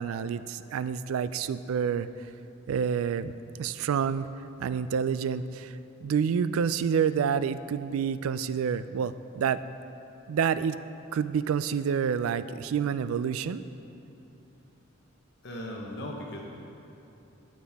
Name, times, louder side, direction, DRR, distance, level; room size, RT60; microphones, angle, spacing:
voice 1, 0.0-2.1 2.7-3.3 3.6-4.3 4.6-9.6 10.3-10.8 11.1-13.6, right 7 dB, 80° right, 14 dB, 0.3 m, -28 dB
voice 2, 15.4-16.4, left 1 dB, 55° left, 0 dB, 1.0 m, -37 dB
12.5 x 7.4 x 3.5 m, 2.8 s
head